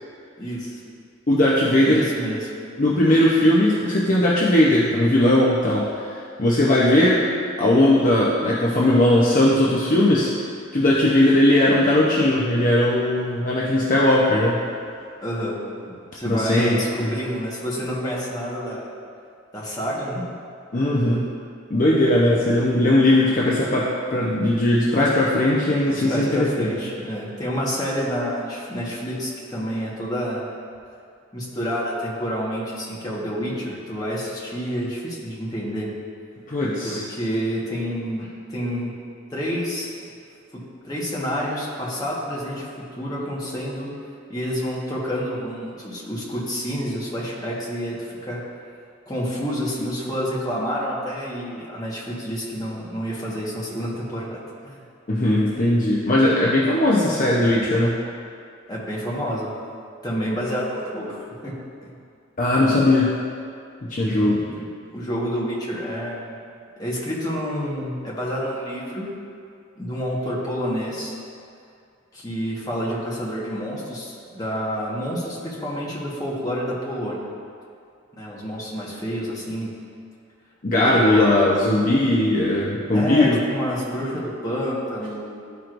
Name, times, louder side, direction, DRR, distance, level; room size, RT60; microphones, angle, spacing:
voice 1, 0.4-0.8 1.8-2.5 15.2-15.6 15.9-18.9 19.5-20.2 23.3-23.5 25.9-30.5 31.3-35.9 36.8-38.9 39.3-39.9 40.5-43.9 44.3-48.4 49.1-54.8 58.7-59.5 60.0-61.2 61.4-61.6 61.8-61.9 64.0-66.4 66.8-69.1 69.8-71.2 72.1-77.2 78.1-79.7 80.9-81.5 82.9-85.6, equal, 20° left, -6 dB, 1.4 m, -29 dB
voice 2, 1.3-2.1 2.8-7.3 7.6-10.3 10.7-14.7 16.2-17.1 20.7-21.3 21.7-26.7 36.5-37.0 55.1-58.0 62.4-63.1 63.8-64.4 80.6-83.4, left 1 dB, 40° left, -5 dB, 0.7 m, -19 dB
12.5 x 4.6 x 2.6 m, 2.4 s
head